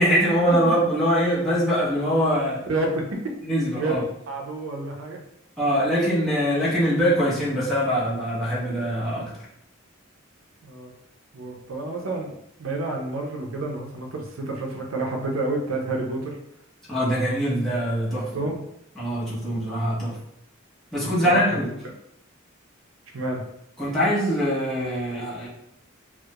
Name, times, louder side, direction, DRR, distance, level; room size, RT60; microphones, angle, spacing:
voice 1, 0.0-2.6 3.4-4.0 5.6-9.3 16.9-18.3 19.0-20.1 20.9-21.7 23.8-25.5, equal, ahead, -10 dB, 0.7 m, -23 dB
voice 2, 2.7-3.1 3.7-3.9 4.3-5.2 10.6-10.9 11.3-12.3 12.6-16.4 18.1-18.6 21.0-21.6 23.1-23.4, right 2 dB, 85° right, 1 dB, 0.5 m, -29 dB
2.3 x 2.0 x 2.8 m, 0.77 s
head